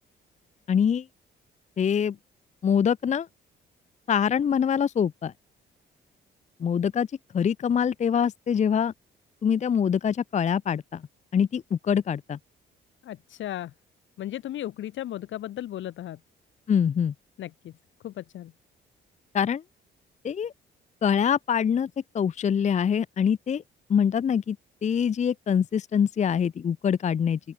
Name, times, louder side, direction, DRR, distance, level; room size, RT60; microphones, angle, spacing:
voice 1, 0.7-1.1 1.8-2.2 2.6-3.3 4.1-5.3 6.6-7.1 7.3-8.9 9.4-11.0 11.3-12.4 16.7-17.1 19.3-19.6 20.2-20.5 21.0-21.9 22.1-23.6 23.9-24.6 24.8-27.4, left 7 dB, 35° left, 0.6 m, -24 dB
voice 2, 13.0-13.7 14.2-16.2 17.4-17.8 18.0-18.5, left 12 dB, 75° left, 1.6 m, -35 dB
open air
cardioid pair, 90°, 20 cm